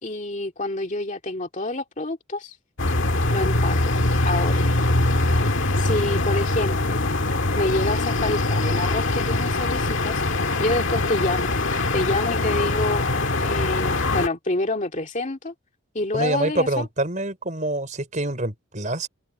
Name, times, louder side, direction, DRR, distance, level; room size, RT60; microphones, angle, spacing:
voice 1, 0.0-2.6 3.3-4.6 5.8-7.0 7.5-10.2 10.6-11.5 11.9-15.5 15.9-16.9, left 2 dB, 35° left, 2.3 m, -27 dB
sound 1, 2.8-14.3, left 2 dB, 60° left, 1.8 m, -23 dB
voice 2, 16.1-19.1, right 2 dB, 35° right, 4.7 m, -26 dB
open air
head